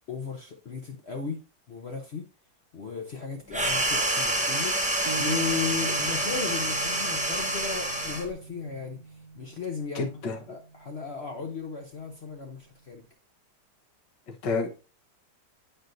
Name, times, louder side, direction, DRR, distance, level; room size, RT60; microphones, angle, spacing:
voice 1, 0.1-1.4 1.7-2.3 2.7-9.0 9.4-10.1 10.5-13.0, left 6 dB, 55° left, 0.7 m, -35 dB
sound 1, 3.5-8.3, right 1 dB, 10° right, 0.4 m, -27 dB
sound 2, 5.1-12.6, right 4 dB, 65° right, 0.9 m, -42 dB
voice 2, 9.9-10.6 14.3-14.7, left 4 dB, 80° left, 1.8 m, -30 dB
9.1 x 4.4 x 2.5 m
omnidirectional pair, 1.9 m